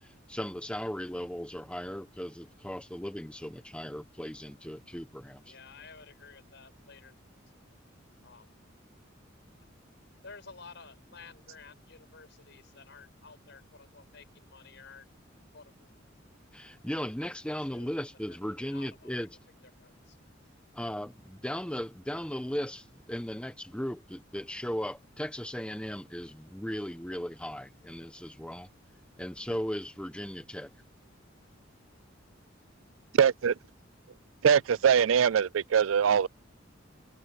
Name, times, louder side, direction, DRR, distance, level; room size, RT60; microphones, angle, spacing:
voice 1, 0.0-5.5 16.5-19.4 20.7-28.7 29.2-30.7, equal, 5° left, 1.3 m, -37 dB
voice 2, 5.5-7.1 8.2-8.5 9.6-9.7 10.2-15.1 15.5-15.9 17.7-18.0 18.3-19.3 19.8-20.2, left 5 dB, 65° left, 6.6 m, -52 dB
voice 3, 33.2-33.5 34.4-36.3, right 7 dB, 85° right, 0.4 m, -22 dB
head